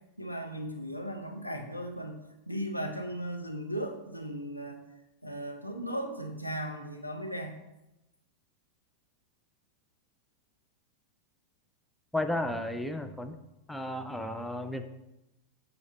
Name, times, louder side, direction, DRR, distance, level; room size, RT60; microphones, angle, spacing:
voice 1, 0.2-4.8 5.2-7.5, equal, 90° left, 3 dB, 0.7 m, -37 dB
voice 2, 12.1-13.4 13.7-14.9, left 1 dB, 5° left, 7 dB, 0.4 m, -33 dB
7.8 x 4.1 x 3.8 m, 0.94 s
figure-of-eight pair, 90°, 0 cm